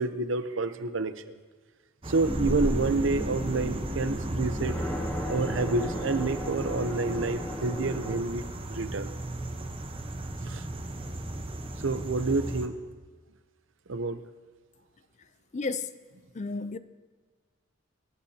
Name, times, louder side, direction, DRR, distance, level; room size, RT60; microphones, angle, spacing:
voice 1, 0.0-1.4 2.1-4.8 5.3-9.1 10.5-10.6 11.8-12.8 13.9-14.2, right 3 dB, 70° right, 0.7 m, -29 dB
sound 1, 2.0-12.7, right 1 dB, 30° right, 1.0 m, -37 dB
sound 2, 2.2-8.2, equal, 10° left, 1.5 m, -33 dB
voice 2, 15.5-15.9 16.3-16.8, left 3 dB, 35° left, 0.5 m, -32 dB
24.5 x 11.5 x 2.8 m
head